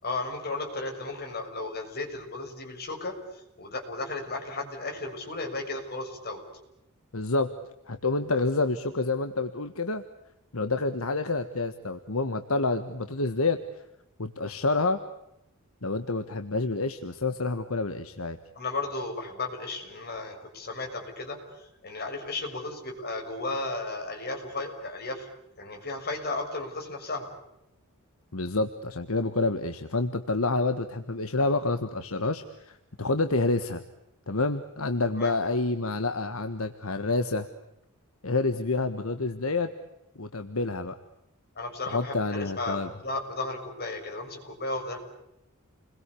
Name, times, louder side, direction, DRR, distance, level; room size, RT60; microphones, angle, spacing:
voice 1, 0.0-3.2 3.6-6.4 18.5-25.3 25.6-27.3 35.1-35.3 41.6-45.0, left 2 dB, 50° left, 3 dB, 6.5 m, -34 dB
voice 2, 7.1-7.5 7.9-10.0 10.5-13.6 14.2-15.0 15.8-18.4 28.3-33.8 34.3-37.5 38.2-39.7 40.1-41.0 41.9-42.9, left 3 dB, 70° left, 9 dB, 1.5 m, -28 dB
29.5 x 22.0 x 8.5 m, 0.87 s
head